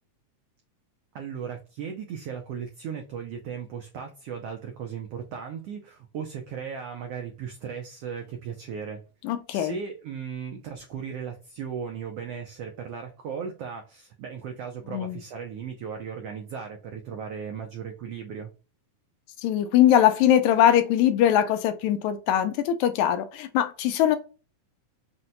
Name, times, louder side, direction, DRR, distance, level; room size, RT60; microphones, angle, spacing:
voice 1, 1.1-9.0 9.5-18.5, right 7 dB, 85° right, 1.3 m, -36 dB
voice 2, 9.2-9.8 14.9-15.2 19.4-24.2, left 11 dB, 80° left, 1.9 m, -21 dB
5.9 x 2.2 x 3.9 m
omnidirectional pair, 3.5 m